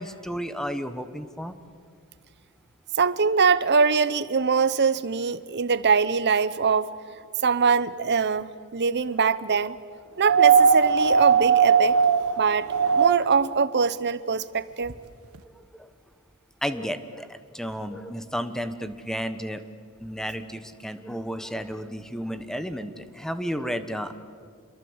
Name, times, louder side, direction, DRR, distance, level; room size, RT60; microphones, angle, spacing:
voice 1, 0.0-1.5 15.8-15.9 16.6-19.6 20.0-24.2, equal, ahead, 10 dB, 1.1 m, -32 dB
voice 2, 2.9-6.9 7.4-9.8 10.2-12.0 12.4-14.9, right 5 dB, 50° right, 16 dB, 0.8 m, -23 dB
sound 1, 10.2-13.5 14.9-15.0, right 6 dB, 70° right, 1.2 m, -19 dB
27.5 x 22.5 x 8.0 m, 2.1 s
head